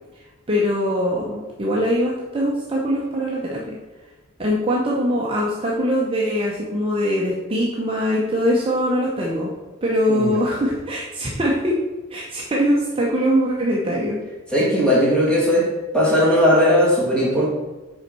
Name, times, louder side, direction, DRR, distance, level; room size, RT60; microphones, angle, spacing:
voice 1, 0.1-3.8 4.4-9.5 9.8-11.8 12.1-14.2, equal, 25° right, -4 dB, 0.7 m, -22 dB
voice 2, 14.5-15.7 15.9-17.5, equal, 5° left, -5 dB, 1.7 m, -17 dB
5.7 x 4.4 x 5.3 m, 1.2 s
head